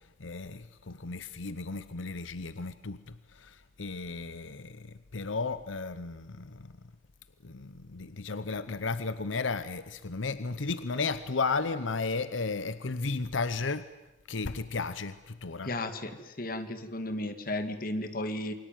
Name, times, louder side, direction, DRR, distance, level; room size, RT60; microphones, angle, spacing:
voice 1, 0.2-6.7 7.4-13.8 14.3-15.7, left 4 dB, 85° left, 14 dB, 0.9 m, -34 dB
voice 2, 15.6-18.5, left 1 dB, 50° left, 8 dB, 2.3 m, -34 dB
28.5 x 22.5 x 9.2 m, 1.0 s
head